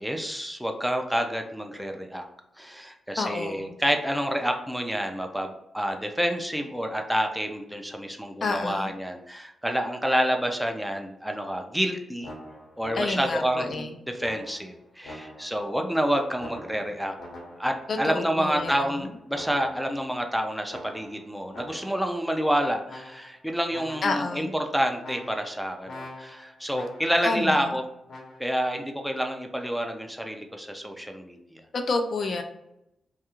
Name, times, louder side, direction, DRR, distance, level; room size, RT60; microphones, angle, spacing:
voice 1, 0.0-2.2 2.6-12.3 12.8-17.1 17.6-27.9 28.4-31.6, equal, ahead, 4 dB, 0.4 m, -28 dB
voice 2, 3.2-3.8 8.4-8.9 12.9-14.0 17.9-19.1 24.0-24.5 27.2-27.8 31.7-32.4, left 3 dB, 55° left, 5 dB, 0.4 m, -29 dB
sound 1, 12.2-13.5 14.2-15.7 16.4-17.9 18.5-20.1 20.7-22.1 22.9-23.4 23.7-24.4 25.0-27.3 28.1-28.4, left 1 dB, 80° left, 0.9 m, -44 dB
2.4 x 2.3 x 2.9 m, 0.84 s
cardioid pair, 80°, 0 cm